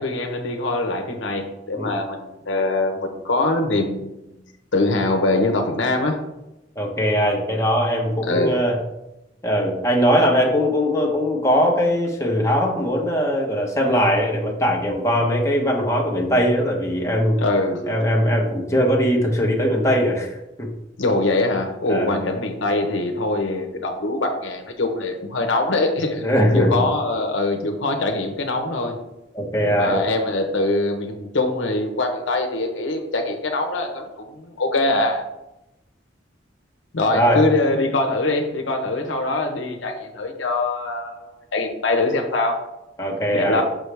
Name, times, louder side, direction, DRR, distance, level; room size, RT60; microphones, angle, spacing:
voice 1, 0.0-4.4 4.7-6.2 8.2-8.5 17.4-17.9 21.0-26.3 26.5-29.0 29.7-35.2 36.9-42.6 43.3-43.6, left 2 dB, 80° left, 3 dB, 0.9 m, -23 dB
voice 2, 6.8-8.8 9.4-17.4 17.8-20.7 21.9-22.2 26.2-26.8 29.3-30.0 37.1-37.4 43.0-43.6, equal, 15° left, -1 dB, 1.0 m, -20 dB
6.2 x 6.1 x 3.4 m, 0.92 s
head